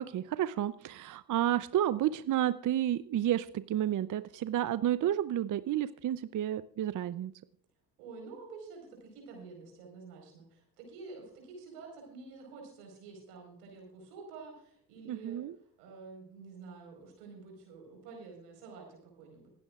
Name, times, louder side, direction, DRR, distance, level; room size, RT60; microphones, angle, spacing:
voice 1, 0.0-7.3 15.1-15.5, right 11 dB, 45° right, 14 dB, 0.7 m, -31 dB
voice 2, 8.0-15.4 15.8-19.5, right 4 dB, 85° right, 1 dB, 4.7 m, -49 dB
24.5 x 9.8 x 2.4 m, 0.64 s
hypercardioid pair, 60°, 45 cm